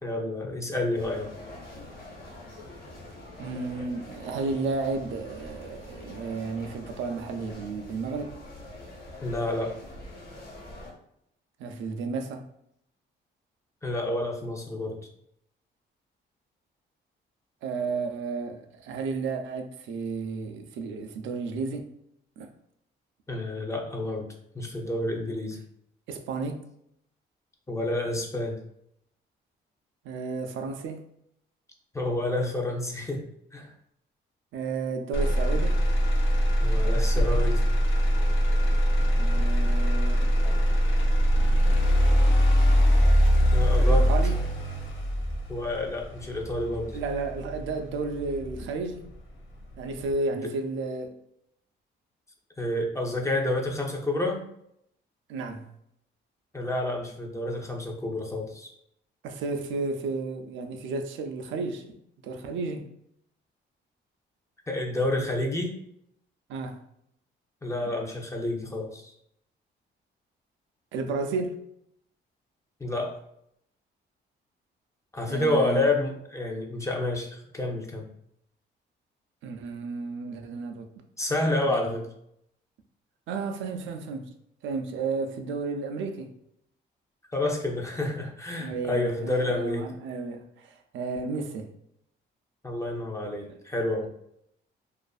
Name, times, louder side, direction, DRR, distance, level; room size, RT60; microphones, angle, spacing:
voice 1, 0.0-1.3 9.2-9.8 13.8-15.0 23.3-24.3 24.5-25.6 27.7-28.6 31.9-33.2 33.5-33.7 36.6-37.6 43.5-44.1 45.5-47.0 52.6-54.4 56.5-58.7 64.7-65.8 67.6-69.1 72.8-73.2 75.1-78.1 81.2-82.0 87.3-89.8 92.6-94.1, left 1 dB, 15° left, 0.5 m, -29 dB
sound 1, 0.9-10.9, left 1 dB, 50° left, 1.1 m, -44 dB
voice 2, 3.4-8.4 11.6-12.4 17.6-21.9 22.4-22.5 26.1-26.6 30.0-31.0 34.5-35.8 39.2-40.3 43.7-44.4 46.9-49.1 49.8-51.2 55.3-55.7 59.2-62.0 62.2-62.8 66.5-66.8 67.8-67.9 70.9-71.6 75.3-75.9 79.4-80.9 81.7-82.0 83.3-84.3 84.6-86.3 88.6-91.7 93.5-93.6, right 4 dB, 75° right, 0.4 m, -32 dB
Motor vehicle (road), 35.1-49.1 49.6-50.1, equal, 75° left, 0.6 m, -22 dB
2.5 x 2.4 x 2.3 m
cardioid pair, 90°, 20 cm